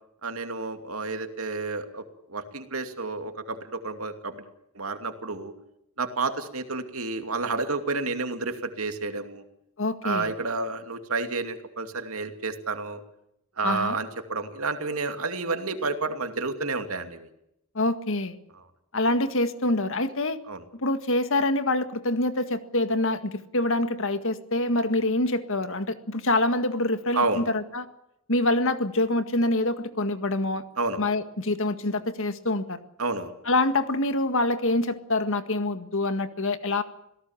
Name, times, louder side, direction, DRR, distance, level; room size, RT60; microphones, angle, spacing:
voice 1, 0.2-2.0 2.3-4.5 4.7-5.5 6.0-9.4 10.0-13.0 13.6-17.3 20.5-20.6 27.1-27.4 30.8-31.0 33.0-33.3, right 3 dB, 80° right, 7 dB, 2.6 m, -30 dB
voice 2, 9.8-10.3 13.6-14.0 17.8-18.4 18.9-20.4 20.7-27.9 28.3-30.6 31.0-32.8 33.5-36.8, left 2 dB, 65° left, 10 dB, 1.9 m, -25 dB
26.0 x 18.0 x 7.3 m, 0.80 s
head